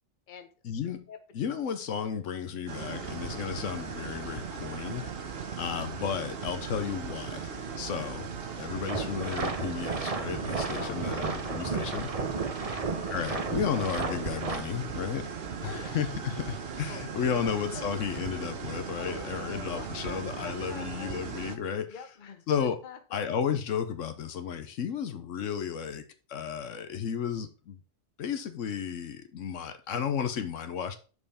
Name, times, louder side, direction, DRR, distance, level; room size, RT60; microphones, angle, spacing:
voice 1, 0.6-1.1 1.3-5.3 5.5-8.3 8.6-12.1 13.1-15.3 15.6-21.9 22.5-22.8 23.1-27.8 28.2-31.0, left 7 dB, 80° left, 1.1 m, -33 dB
sound 1, 2.7-21.6, right 6 dB, 55° right, 1.1 m, -38 dB
sound 2, 8.9-14.6, right 4 dB, 35° right, 0.8 m, -33 dB
voice 2, 10.6-11.3 12.6-12.9 15.6-16.0 16.9-17.9 19.0-21.1 21.9-23.2, left 5 dB, 45° left, 1.0 m, -45 dB
6.3 x 5.4 x 4.2 m
omnidirectional pair, 1.3 m